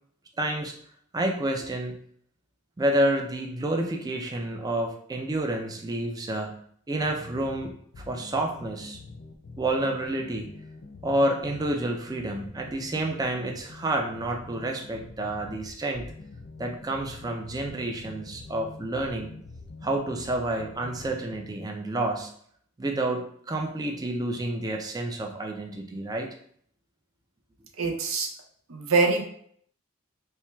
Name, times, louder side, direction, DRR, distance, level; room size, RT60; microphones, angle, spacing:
voice 1, 0.4-0.8 1.1-2.0 2.8-9.0 9.6-10.6 11.0-16.1 16.6-19.3 19.8-22.3 22.8-26.3, right 1 dB, 20° right, 2 dB, 0.4 m, -29 dB
sound 1, 7.0-21.5, left 3 dB, 50° left, 0.4 m, -45 dB
voice 2, 27.8-28.3 28.7-29.2, right 4 dB, 80° right, 4 dB, 0.6 m, -24 dB
4.4 x 3.1 x 2.3 m, 0.62 s
head